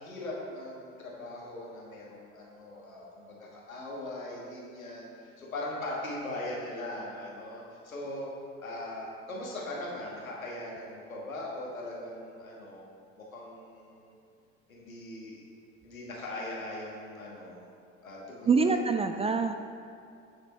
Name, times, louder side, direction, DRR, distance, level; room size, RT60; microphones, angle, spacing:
voice 1, 0.0-5.1 5.4-8.3 8.6-12.9 13.2-14.2 14.7-15.4 15.8-17.6 18.0-18.8, left 1 dB, 85° left, -4 dB, 1.9 m, -40 dB
voice 2, 18.5-19.5, right 4 dB, 15° right, 7 dB, 0.4 m, -25 dB
14.5 x 6.7 x 3.3 m, 2.5 s
figure-of-eight pair, 65°, 40 cm